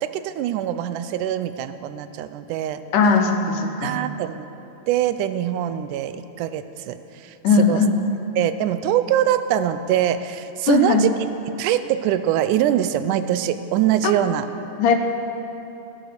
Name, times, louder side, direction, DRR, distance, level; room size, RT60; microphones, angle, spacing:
voice 1, 0.0-2.8 3.8-4.5 4.9-7.8 8.4-11.1 11.6-14.5, right 11 dB, 90° right, 12 dB, 2.1 m, -23 dB
voice 2, 2.9-4.0 7.4-8.0 10.7-11.1 14.0-14.1 14.8-14.9, left 5 dB, 85° left, 4 dB, 2.6 m, -18 dB
14.5 x 11.0 x 6.8 m, 2.9 s
omnidirectional pair, 3.5 m